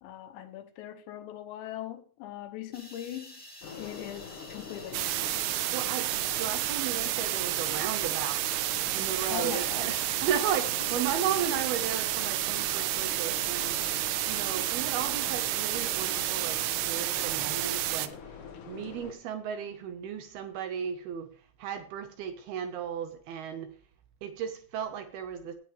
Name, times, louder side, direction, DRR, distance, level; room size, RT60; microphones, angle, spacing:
voice 1, 0.0-3.4 3.8-5.5 5.8-5.9 9.3-10.1, left 12 dB, 80° left, 3.2 m, -41 dB
sound 1, 2.7-16.7, left 1 dB, 10° left, 0.4 m, -49 dB
sound 2, 3.6-19.1, left 6 dB, 65° left, 2.2 m, -45 dB
sound 3, 4.9-18.1, right 15 dB, 90° right, 3.0 m, -30 dB
voice 2, 5.5-8.6 8.9-13.8 14.3-18.2 18.7-21.3 21.6-23.7 24.2-25.5, right 8 dB, 70° right, 2.6 m, -35 dB
17.0 x 9.4 x 3.2 m
omnidirectional pair, 5.2 m